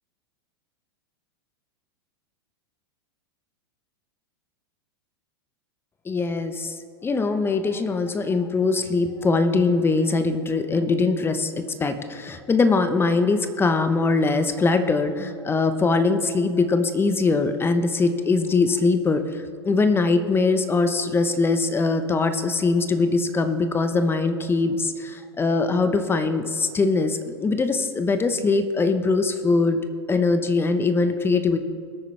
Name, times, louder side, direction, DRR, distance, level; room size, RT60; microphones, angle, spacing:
voice 1, 6.1-6.8 7.0-11.5 11.8-29.8 30.1-31.6, left 3 dB, 15° left, 9 dB, 0.9 m, -22 dB
21.5 x 9.0 x 3.3 m, 2.4 s
hypercardioid pair, 100°, 14 cm